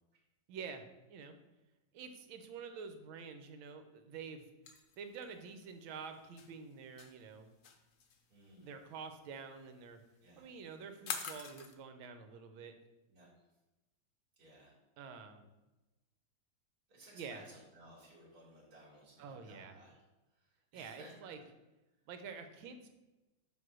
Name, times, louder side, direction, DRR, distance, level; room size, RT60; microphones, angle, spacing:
voice 1, 0.5-1.4 1.9-4.5 5.0-7.5 8.6-10.0 10.4-12.8 15.0-15.5 17.1-17.4 19.2-19.8 20.7-21.4 22.1-22.9, right 5 dB, 80° right, 7 dB, 1.5 m, -48 dB
sound 1, 4.6-11.7, left 6 dB, 70° left, 0.7 m, -46 dB
voice 2, 8.3-8.7 10.2-10.5 13.1-13.3 14.4-14.7 16.9-20.0 20.3-21.1, right 1 dB, 45° right, -7 dB, 2.4 m, -58 dB
7.4 x 3.0 x 6.0 m, 1.1 s
omnidirectional pair, 2.2 m